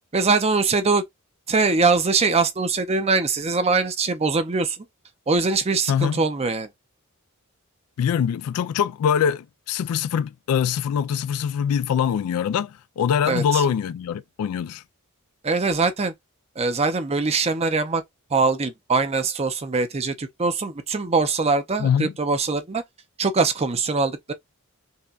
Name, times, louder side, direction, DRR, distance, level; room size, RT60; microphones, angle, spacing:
voice 1, 0.1-1.0 1.5-4.8 5.3-6.7 13.3-13.6 15.4-16.1 16.6-18.0 18.3-22.8 23.2-24.3, right 4 dB, 30° right, 0.5 m, -22 dB
voice 2, 5.9-6.2 8.0-14.8 21.8-22.1, left 8 dB, 80° left, 0.3 m, -23 dB
5.5 x 2.2 x 2.4 m
head